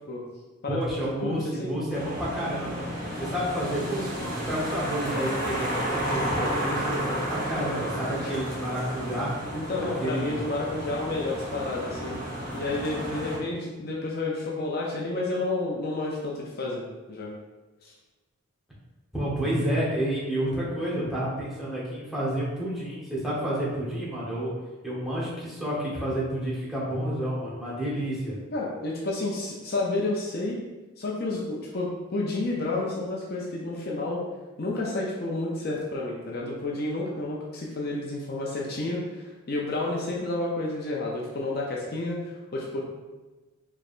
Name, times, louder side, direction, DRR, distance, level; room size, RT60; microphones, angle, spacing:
voice 1, 0.7-2.8 3.1-9.3 10.0-10.5 19.1-24.5 24.8-28.4, right 1 dB, ahead, -9 dB, 1.0 m, -30 dB
voice 2, 1.2-1.8 9.5-12.2 12.5-16.8 17.1-17.3 17.8-17.9 28.5-30.6 31.0-34.2 34.6-42.8, left 2 dB, 45° left, -3 dB, 0.5 m, -30 dB
sound 1, 1.9-13.4, equal, 40° right, 1.1 m, -32 dB
4.5 x 3.3 x 2.5 m, 1.2 s
head